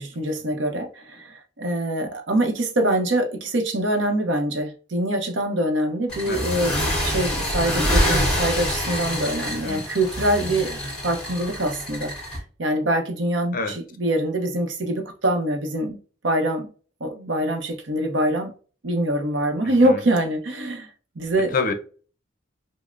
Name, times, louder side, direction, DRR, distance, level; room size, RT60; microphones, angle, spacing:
voice 1, 0.0-6.7 7.0-12.1 12.6-16.0 16.2-16.7 17.0-18.5 18.8-20.9 21.2-21.5, right 1 dB, 70° right, 0.7 m, -24 dB
sound 1, 6.1-12.4, equal, 5° left, 1.7 m, -26 dB
voice 2, 9.5-9.8 13.5-13.8 19.6-20.0 21.5-21.7, left 4 dB, 45° left, 0.5 m, -28 dB
5.1 x 2.0 x 2.5 m
head